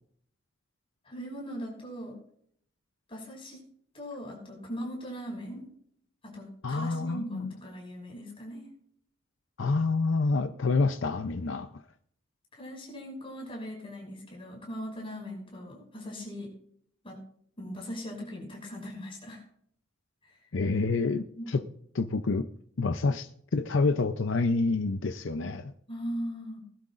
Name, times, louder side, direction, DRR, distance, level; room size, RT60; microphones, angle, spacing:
voice 1, 1.0-2.2 3.1-3.6 3.9-5.7 6.2-8.7 12.5-16.5 17.0-17.2 17.6-19.4 20.2-20.4 21.4-21.6 25.9-26.6, equal, 30° left, 0 dB, 5.9 m, -39 dB
voice 2, 6.6-7.5 9.6-11.7 20.5-21.6 21.9-22.5 22.8-25.7, left 3 dB, 70° left, 8 dB, 0.6 m, -28 dB
20.5 x 12.0 x 2.5 m, 0.65 s
head